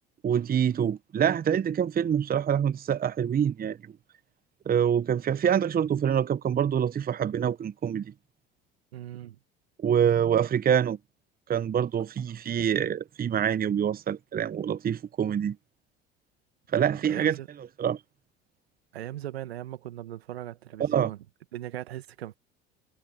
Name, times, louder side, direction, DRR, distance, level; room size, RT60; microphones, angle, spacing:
voice 1, 0.2-3.8 4.7-8.1 9.8-11.0 11.5-15.6 16.7-17.4 17.8-18.0 20.8-21.1, right 8 dB, 30° right, 0.9 m, -25 dB
voice 2, 8.9-9.4 16.8-17.5 18.9-21.2 21.5-22.4, right 13 dB, 85° right, 1.8 m, -39 dB
hypercardioid pair, 65°, 30 cm